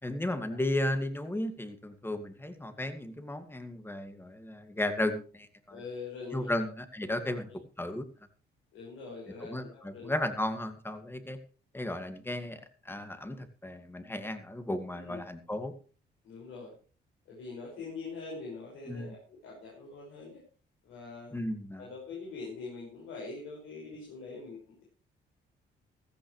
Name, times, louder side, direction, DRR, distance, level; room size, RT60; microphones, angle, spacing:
voice 1, 0.0-5.8 6.3-7.5 7.8-8.1 9.5-11.4 11.7-12.6 12.9-15.7 18.9-19.1 21.3-21.8, left 1 dB, 10° left, 8 dB, 2.1 m, -34 dB
voice 2, 5.7-6.6 7.2-7.4 8.7-10.1 14.9-15.2 16.2-16.8 17.3-20.4 20.8-21.3 21.7-24.8, left 4 dB, 90° left, -3 dB, 5.8 m, -43 dB
15.5 x 14.0 x 3.2 m, 0.39 s
cardioid pair, 90°, 20 cm